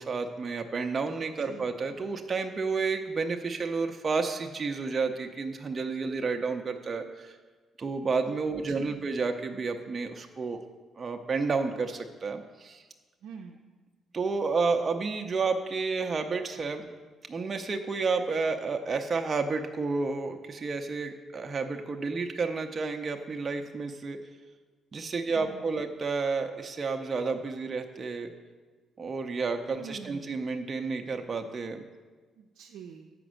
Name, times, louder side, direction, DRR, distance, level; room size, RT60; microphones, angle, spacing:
voice 1, 0.0-7.3 7.8-10.6 11.0-12.8 14.1-16.9 17.3-24.2 24.9-28.3 29.0-31.8, right 4 dB, 35° right, 4 dB, 0.6 m, -31 dB
voice 2, 1.4-1.7 8.7-9.1 13.2-13.6 25.3-25.8 29.7-30.4 32.4-33.1, right 6 dB, 80° right, 0 dB, 0.5 m, -46 dB
7.7 x 5.1 x 6.2 m, 1.3 s
cardioid pair, 90°, 0 cm